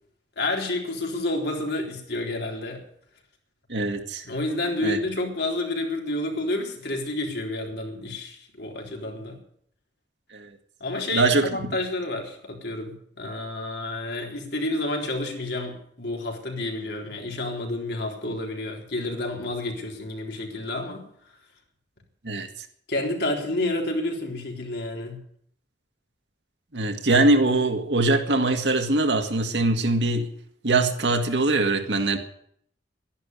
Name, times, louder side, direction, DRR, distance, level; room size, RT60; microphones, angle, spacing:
voice 1, 0.4-2.8 4.2-9.4 10.8-21.0 22.9-25.2, left 2 dB, 65° left, 1 dB, 3.9 m, -29 dB
voice 2, 3.7-4.2 4.8-5.0 10.3-10.5 11.1-11.5 22.2-22.5 26.7-30.3 30.6-32.2, right 2 dB, 75° right, 5 dB, 1.9 m, -22 dB
12.0 x 11.0 x 9.6 m, 0.66 s
head